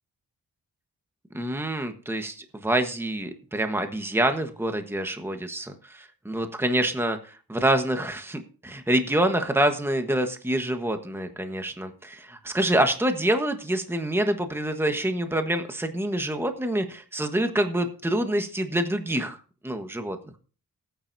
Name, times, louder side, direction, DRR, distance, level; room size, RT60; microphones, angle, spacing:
voice 1, 1.3-19.4 19.6-20.2, right 1 dB, 5° right, 6 dB, 1.3 m, -26 dB
18.5 x 9.3 x 2.7 m, 0.37 s
wide cardioid pair, 100°, 34 cm